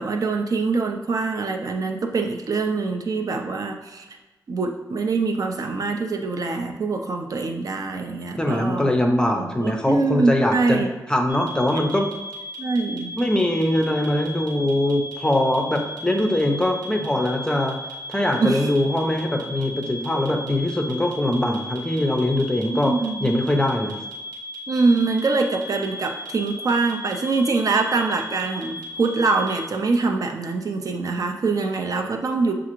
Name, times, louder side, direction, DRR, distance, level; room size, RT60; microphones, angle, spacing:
voice 1, 0.0-4.1 4.5-9.0 9.3-10.9 12.6-13.1 18.4-18.7 22.7-23.3 24.7-32.5, right 3 dB, 55° right, 3 dB, 0.5 m, -24 dB
voice 2, 8.4-12.1 13.2-17.8 18.1-22.9 23.2-23.9, left 1 dB, 10° left, 3 dB, 0.5 m, -22 dB
sound 1, 11.3-29.6, left 1 dB, 85° right, 1.0 m, -37 dB
5.9 x 2.4 x 3.0 m, 1.1 s
wide cardioid pair, 110°, 7 cm